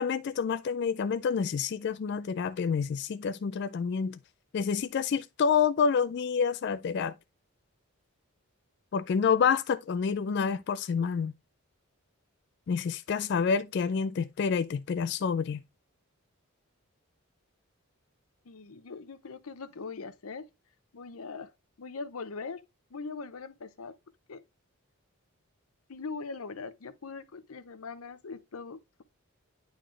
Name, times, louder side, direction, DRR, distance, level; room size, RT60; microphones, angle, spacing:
voice 1, 0.0-4.2 4.5-7.1 8.9-11.3 12.7-15.6, left 6 dB, 50° left, 0.3 m, -28 dB
voice 2, 18.4-20.4 20.9-21.5 21.8-22.6 22.9-23.9 24.3-24.4 25.9-29.0, left 4 dB, 75° left, 0.7 m, -41 dB
9.2 x 4.0 x 3.2 m
head